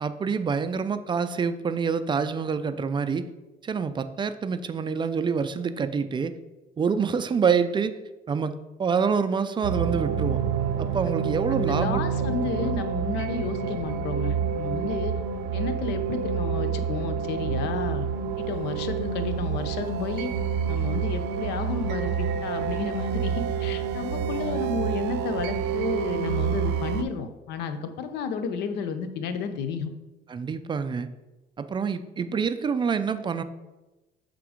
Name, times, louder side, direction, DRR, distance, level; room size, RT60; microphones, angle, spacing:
voice 1, 0.0-3.3 3.6-6.4 6.8-7.9 8.3-10.4 10.8-12.0 12.5-12.7 30.3-31.1 31.6-33.4, right 6 dB, 30° right, 11 dB, 0.4 m, -26 dB
sound 1, 9.6-27.0, right 7 dB, 85° right, 0.5 m, -28 dB
voice 2, 11.5-15.1 15.5-18.1 18.4-20.3 20.7-29.9, left 5 dB, 85° left, 8 dB, 0.6 m, -32 dB
6.9 x 3.7 x 4.9 m, 1.1 s
cardioid pair, 110°, 17 cm